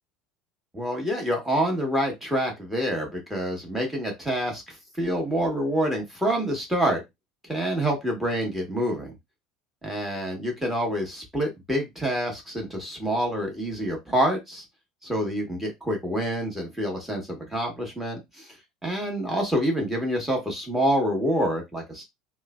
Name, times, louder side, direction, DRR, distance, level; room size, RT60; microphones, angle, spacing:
voice 1, 0.7-7.0 7.5-9.1 9.8-14.6 15.0-18.5 18.8-22.0, equal, 5° right, 1 dB, 1.3 m, -27 dB
3.0 x 2.1 x 2.4 m, 0.19 s
figure-of-eight pair, 70°, 3 cm